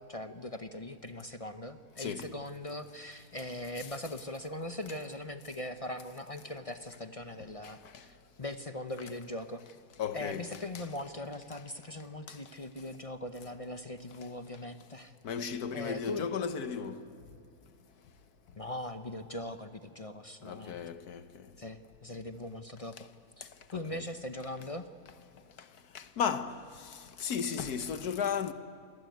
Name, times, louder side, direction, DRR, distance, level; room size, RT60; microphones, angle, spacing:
voice 1, 0.0-9.6 10.1-15.1 15.7-16.3 18.6-20.8 21.6-23.1 23.4-24.9, left 1 dB, 30° left, 0.6 m, -40 dB
voice 2, 2.0-2.3 3.8-3.9 7.6-8.0 10.0-10.9 12.3-12.4 15.2-17.0 20.4-21.5 23.7-24.0 25.9-28.5, left 7 dB, 75° left, 1.6 m, -35 dB
27.0 x 20.0 x 9.4 m
omnidirectional pair, 1.7 m